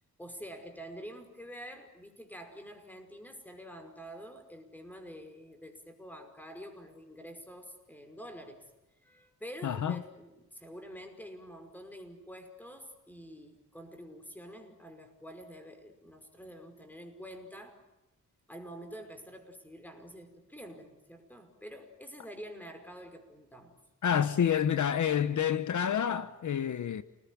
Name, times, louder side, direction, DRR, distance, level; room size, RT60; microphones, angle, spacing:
voice 1, 0.2-8.6 9.0-17.8 18.5-23.8, equal, 5° left, 5.3 m, -47 dB
voice 2, 9.6-10.0 24.0-27.0, left 8 dB, 65° left, 1.0 m, -28 dB
29.0 x 20.0 x 10.0 m
wide cardioid pair, 105°, 31 cm